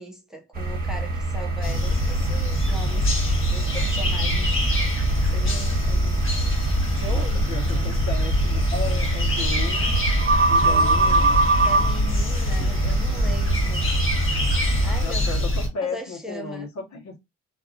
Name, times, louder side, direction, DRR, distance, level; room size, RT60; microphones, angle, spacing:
voice 1, 0.0-3.1 3.5-4.5 5.2-6.3 6.9-7.9 10.4-13.9 14.8-15.5 15.8-16.7, right 1 dB, ahead, 0.9 m, -39 dB
sound 1, 0.5-15.1, right 2 dB, 30° right, 1.2 m, -25 dB
sound 2, 1.6-15.7, equal, 45° left, 1.2 m, -24 dB
voice 2, 7.1-9.9 10.5-11.4 15.0-17.2, left 4 dB, 65° left, 1.2 m, -34 dB
2.8 x 2.4 x 2.4 m
cardioid pair, 90°, 30 cm